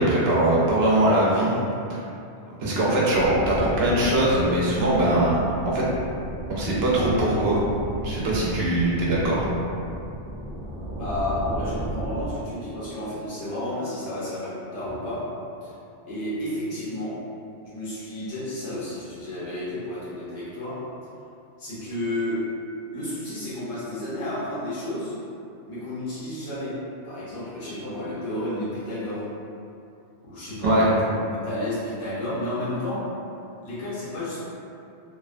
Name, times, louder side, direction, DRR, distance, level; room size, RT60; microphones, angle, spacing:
voice 1, 0.0-1.5 1.9-2.1 2.6-5.4 5.6-5.9 6.5-7.6 8.0-9.4 30.6-30.9, right 1 dB, 70° right, -6 dB, 0.8 m, -21 dB
sound 1, 3.1-12.3, right 1 dB, 40° left, 1.5 m, -34 dB
voice 2, 10.9-15.3 15.6-15.7 16.1-17.2 17.6-20.8 21.6-22.4 22.9-25.1 25.6-26.8 27.0-29.3 30.2-31.0 31.3-33.1 33.6-34.4, left 1 dB, 75° left, -10 dB, 1.2 m, -31 dB
2.7 x 2.1 x 2.4 m, 2.6 s
omnidirectional pair, 1.2 m